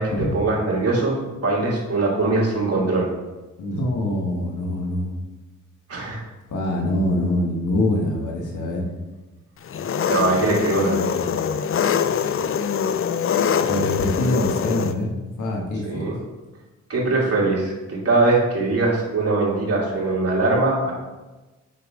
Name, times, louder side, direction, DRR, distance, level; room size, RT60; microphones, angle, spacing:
voice 1, 0.0-3.1 5.9-6.2 10.1-11.2 15.8-16.2 16.9-20.9, right 3 dB, 50° right, -3 dB, 2.6 m, -21 dB
voice 2, 3.6-5.1 6.5-8.8 10.8-11.3 13.6-16.1, left 1 dB, 70° left, -1 dB, 1.7 m, -25 dB
Engine, 9.7-14.9, left 7 dB, 45° left, 0.5 m, -23 dB
6.9 x 5.8 x 3.7 m, 1.1 s
cardioid pair, 65°, 31 cm